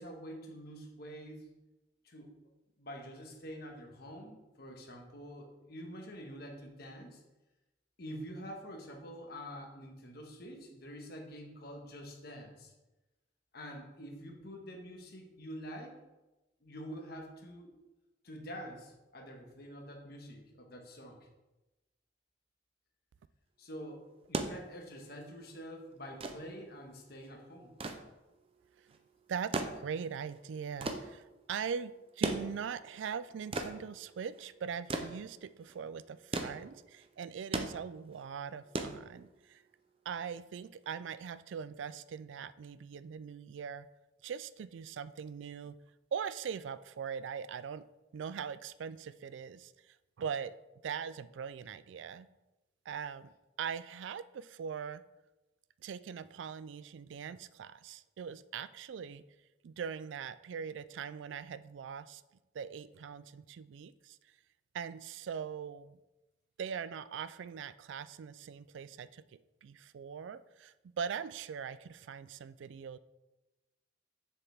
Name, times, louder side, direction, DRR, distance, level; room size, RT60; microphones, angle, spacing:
voice 1, 0.0-1.5 2.0-2.3 2.8-7.2 8.0-12.7 13.5-15.9 16.6-17.7 18.2-21.3 23.6-27.7, equal, 55° left, 1 dB, 1.4 m, -47 dB
sound 1, 24.1-39.6 40.8-40.9, right 2 dB, 30° right, 0.6 m, -40 dB
voice 2, 29.3-39.6 40.1-43.9 44.2-45.8 46.1-47.9 48.1-50.6 50.8-52.3 52.9-53.3 53.6-55.0 55.8-59.2 59.6-62.2 62.5-64.2 64.7-66.0 66.6-69.2 69.6-73.0, right 7 dB, 75° right, 16 dB, 0.3 m, -41 dB
7.0 x 6.9 x 3.5 m, 1.0 s
head